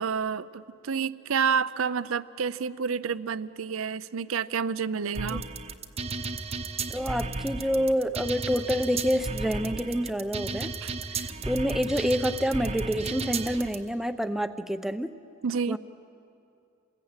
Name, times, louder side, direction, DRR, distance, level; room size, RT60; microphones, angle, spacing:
voice 1, 0.0-5.4 10.8-10.9 15.4-15.8, right 6 dB, 85° right, 16 dB, 0.6 m, -29 dB
sound 1, 5.1-13.7, right 3 dB, 30° right, 0.9 m, -34 dB
voice 2, 6.9-10.7 11.1-15.1 15.7-15.8, equal, ahead, 10 dB, 0.6 m, -28 dB
28.5 x 20.5 x 8.9 m, 2.7 s
head